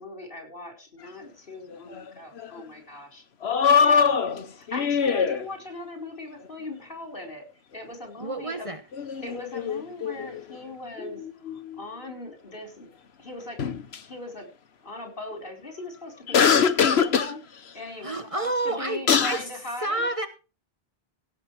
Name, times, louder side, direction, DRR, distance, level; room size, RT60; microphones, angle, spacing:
voice 1, 0.0-3.2 3.8-4.2 4.7-7.5 7.7-8.8 9.2-12.9 13.2-13.6 14.0-14.5 14.8-17.4 17.7-20.1, left 2 dB, 60° left, 3 dB, 4.6 m, -39 dB
sound 1, 1.7-2.1 2.4-2.5 3.4-5.4 8.9-10.6 11.0-11.8 13.6-14.0 16.3-17.3 18.7-18.8 19.1-19.4, left 6 dB, 80° left, 1.3 m, -22 dB
voice 2, 8.2-8.8 18.0-19.4 19.8-20.3, right 2 dB, 35° right, 8 dB, 1.2 m, -29 dB
16.5 x 6.9 x 4.7 m, 0.32 s
omnidirectional pair, 1.1 m